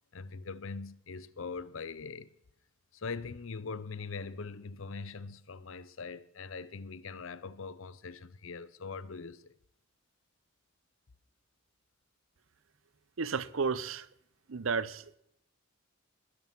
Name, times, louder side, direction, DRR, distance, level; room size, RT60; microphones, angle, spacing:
voice 1, 0.1-2.3 2.9-9.5, left 4 dB, 70° left, 0.7 m, -42 dB
voice 2, 13.2-14.1 14.5-15.0, right 5 dB, 70° right, 0.7 m, -32 dB
20.5 x 7.5 x 6.0 m
head